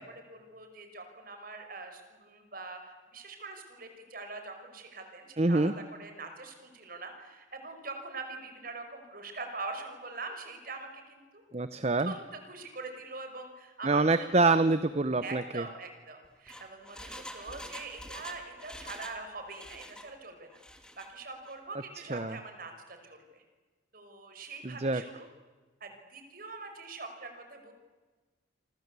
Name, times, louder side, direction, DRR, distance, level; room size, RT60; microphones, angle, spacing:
voice 1, 0.0-11.4 12.0-14.6 15.2-20.6 21.0-23.4 23.9-25.3 25.8-27.7, right 3 dB, 50° right, 6 dB, 5.1 m, -43 dB
voice 2, 5.4-5.7 11.5-12.1 13.8-15.6 22.1-22.4 24.6-25.0, right 3 dB, 35° right, 12 dB, 0.8 m, -26 dB
Engine, 16.2-19.2 19.5-20.1 20.5-21.1 21.4-21.5, left 1 dB, 5° left, 2.2 m, -46 dB
29.0 x 24.5 x 8.3 m, 1.4 s
head